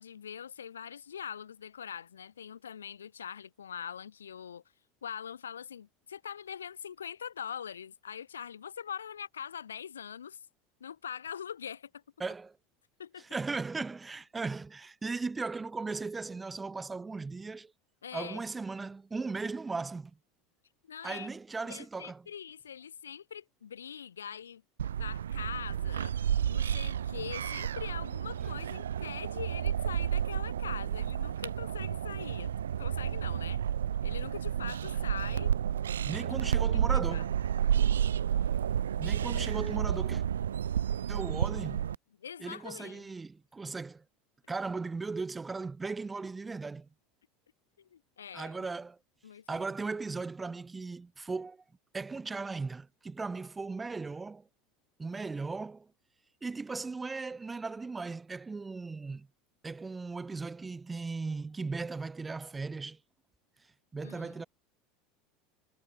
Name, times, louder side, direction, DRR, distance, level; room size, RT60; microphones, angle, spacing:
voice 1, 0.0-4.6 5.0-10.4 10.8-12.0 13.0-13.2 18.0-18.4 20.8-21.3 21.6-24.6 24.9-26.2 26.5-32.5 32.8-33.6 34.0-35.5 36.7-37.2 42.2-43.1 47.8-48.5 49.2-49.6 64.0-64.4, left 8 dB, 75° left, 5.4 m, -43 dB
voice 2, 12.2-12.6 13.2-17.7 18.1-20.1 21.0-22.2 36.0-37.3 38.9-40.2 41.1-41.9 42.4-44.0 44.5-46.9 48.3-49.0 49.5-51.6 51.9-54.5 55.0-55.9 56.4-59.3 59.6-63.0 63.9-64.4, right 4 dB, 15° right, 4.9 m, -37 dB
sound 1, 24.8-42.0, right 9 dB, 70° right, 0.7 m, -31 dB
figure-of-eight pair, 75°, 0 cm